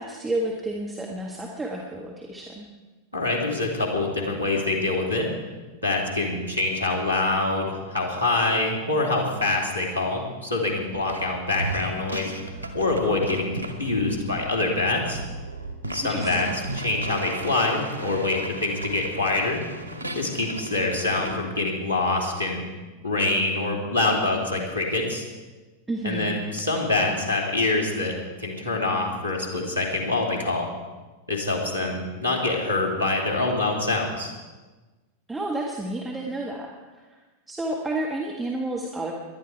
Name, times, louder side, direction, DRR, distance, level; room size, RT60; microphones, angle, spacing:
voice 1, 0.0-2.7 16.0-16.6 25.9-26.4 35.3-37.2 37.5-39.1, right 2 dB, 10° right, -1 dB, 1.6 m, -31 dB
voice 2, 3.1-5.3 5.8-12.3 12.7-15.2 15.9-19.6 20.1-22.6 23.0-25.2 26.0-28.1 28.4-30.7 31.3-34.3, left 2 dB, 85° right, 0 dB, 3.0 m, -25 dB
sound 1, 11.1-11.3 11.5-21.4, right 2 dB, 90° left, 1.7 m, -35 dB
19.0 x 11.5 x 4.7 m, 1.3 s
figure-of-eight pair, 90°, 0 cm